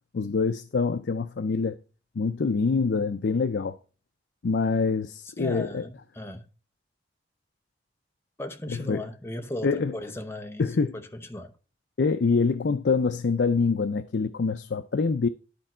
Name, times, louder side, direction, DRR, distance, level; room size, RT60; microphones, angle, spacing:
voice 1, 0.1-1.8 2.2-3.8 4.4-5.8 8.7-9.0 9.6-9.9 10.6-11.0 12.0-15.3, left 4 dB, 70° left, 0.5 m, -25 dB
voice 2, 5.4-6.5 8.4-11.5, left 1 dB, 15° left, 0.8 m, -37 dB
11.5 x 4.4 x 4.3 m
head